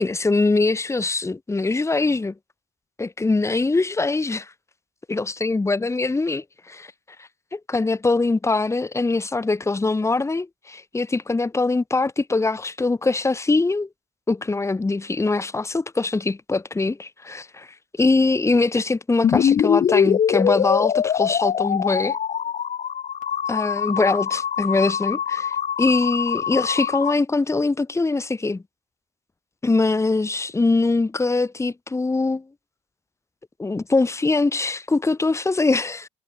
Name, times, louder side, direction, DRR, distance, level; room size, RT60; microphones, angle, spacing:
voice 1, 0.0-2.3 3.0-4.5 5.1-6.9 7.2-13.9 14.3-22.2 23.5-28.6 29.6-32.4 33.6-36.1, left 3 dB, 15° left, 3.4 m, -22 dB
sound 1, 19.2-27.1, left 8 dB, 45° left, 5.9 m, -23 dB
cardioid pair, 110°, 17 cm